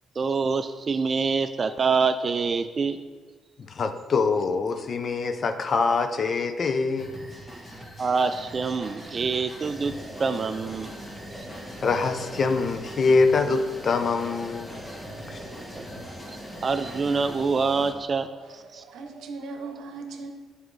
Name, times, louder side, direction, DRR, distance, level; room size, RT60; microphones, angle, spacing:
voice 1, 0.2-3.0 7.8-10.9 15.7-15.8 16.6-18.3 18.5-18.8, right 4 dB, 40° right, 0.3 m, -26 dB
voice 2, 3.7-7.1 11.8-14.8 15.3-15.4, left 4 dB, 45° left, 0.5 m, -24 dB
sound 1, 7.0-17.4, equal, 25° left, 1.6 m, -44 dB
sound 2, 9.6-17.9, equal, ahead, 1.0 m, -42 dB
voice 3, 18.3-20.3, right 3 dB, 80° right, 0.7 m, -39 dB
7.9 x 4.7 x 3.2 m
cardioid pair, 90°, 0 cm